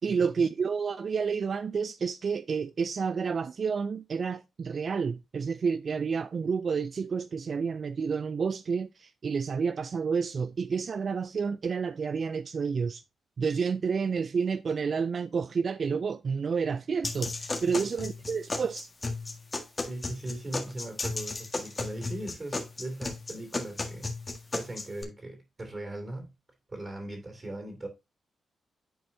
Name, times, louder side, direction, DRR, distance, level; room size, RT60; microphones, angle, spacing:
voice 1, 0.0-13.0 13.4-18.9, right 5 dB, 55° right, 0.3 m, -30 dB
sound 1, 17.0-25.0, left 3 dB, 35° left, 1.6 m, -35 dB
voice 2, 19.9-24.2 24.5-26.3 26.7-27.9, right 1 dB, 35° right, 2.6 m, -39 dB
10.0 x 4.3 x 2.7 m
supercardioid pair, 55°, 0 cm